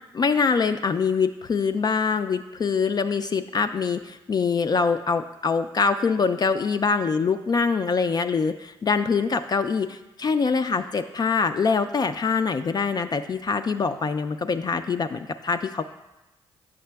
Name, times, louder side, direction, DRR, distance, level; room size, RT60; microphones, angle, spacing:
voice 1, 0.1-15.8, left 5 dB, 35° left, 9 dB, 0.3 m, -24 dB
8.5 x 6.4 x 2.3 m, 1.0 s
hypercardioid pair, 40°, 12 cm